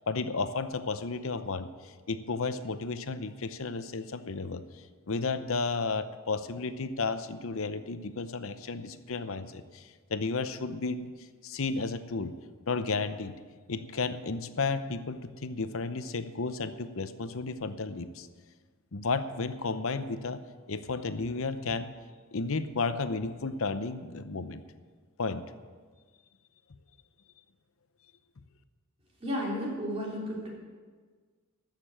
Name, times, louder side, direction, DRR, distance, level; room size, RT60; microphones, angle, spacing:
voice 1, 0.0-4.6 5.1-11.1 11.4-12.4 12.7-13.3 13.7-18.3 18.9-20.4 20.7-21.9 22.3-24.6 25.2-25.5, left 4 dB, 65° left, 11 dB, 0.8 m, -33 dB
voice 2, 29.2-30.5, equal, 25° right, -4 dB, 3.5 m, -33 dB
13.5 x 6.8 x 8.9 m, 1.5 s
head